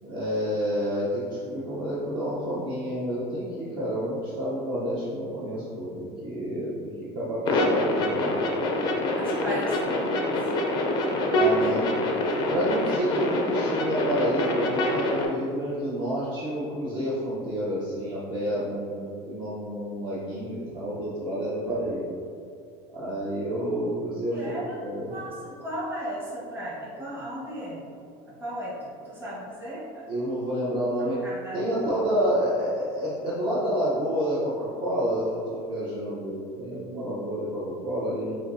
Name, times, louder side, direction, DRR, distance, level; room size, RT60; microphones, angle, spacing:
voice 1, 0.0-8.4 11.3-12.0 12.5-22.1 22.9-24.6 24.8-25.2 30.1-31.2 31.5-38.4, equal, 35° right, -8 dB, 0.8 m, -29 dB
sound 1, 7.4-15.2, left 1 dB, 30° left, 0.5 m, -25 dB
voice 2, 9.1-10.4 11.6-11.7 12.8-12.9 24.3-24.8 25.1-27.8 28.3-30.1 31.0-31.7, equal, 15° right, -8 dB, 1.2 m, -36 dB
6.9 x 2.7 x 2.6 m, 2.5 s
cardioid pair, 175°, 15 cm